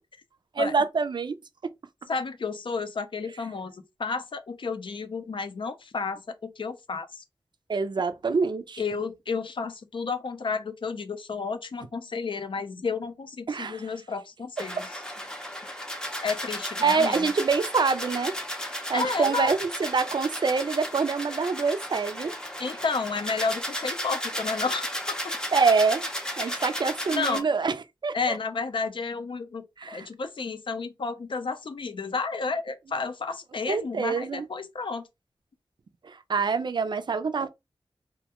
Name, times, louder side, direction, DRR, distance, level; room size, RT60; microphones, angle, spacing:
voice 1, 0.5-1.4 1.6-1.7 7.7-8.8 13.5-13.9 16.8-18.3 18.9-22.3 25.5-26.0 26.4-27.8 28.0-28.4 29.8-30.1 33.7-34.5 36.0-37.5, right 5 dB, 55° right, 0.4 m, -25 dB
voice 2, 2.1-7.2 8.8-15.0 16.2-17.3 18.9-19.5 22.6-25.2 26.5-26.6 27.1-27.4 28.1-35.1, left 4 dB, 65° left, 0.4 m, -31 dB
sound 1, 14.6-27.4, equal, 10° left, 0.5 m, -34 dB
2.2 x 2.1 x 2.8 m
wide cardioid pair, 75°, 9 cm